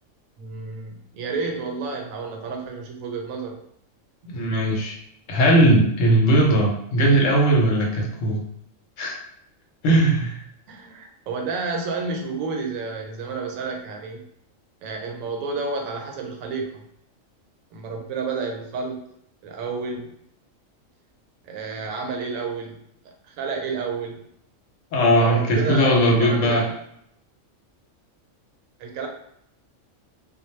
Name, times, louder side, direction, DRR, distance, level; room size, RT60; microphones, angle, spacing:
voice 1, 0.4-3.6 10.7-14.2 14.8-16.7 17.7-19.0 19.4-20.1 21.4-22.8 23.0-24.2 25.1-26.8 28.8-29.1, right 4 dB, 85° right, 2 dB, 1.0 m, -30 dB
voice 2, 4.3-5.0 5.3-8.4 9.0-9.2 9.8-10.4 24.9-26.6, right 1 dB, 75° left, 0 dB, 0.9 m, -19 dB
2.2 x 2.0 x 3.0 m, 0.72 s
omnidirectional pair, 1.4 m